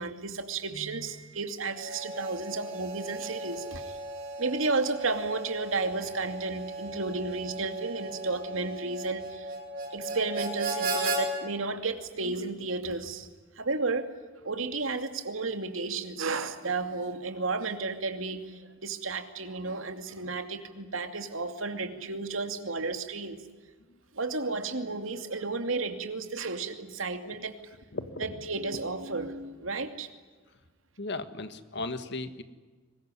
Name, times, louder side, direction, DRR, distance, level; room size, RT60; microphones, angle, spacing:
voice 1, 0.0-4.0 4.4-9.5 9.9-13.3 13.6-14.1 14.4-23.4 24.1-27.6 28.2-30.1, right 3 dB, 85° right, 7 dB, 2.5 m, -33 dB
Harmonica, 1.7-11.2, right 2 dB, 50° right, 6.9 m, -36 dB
voice 2, 27.9-28.4 31.0-32.4, left 2 dB, 60° left, 10 dB, 1.7 m, -36 dB
23.5 x 21.0 x 9.9 m, 1.4 s
head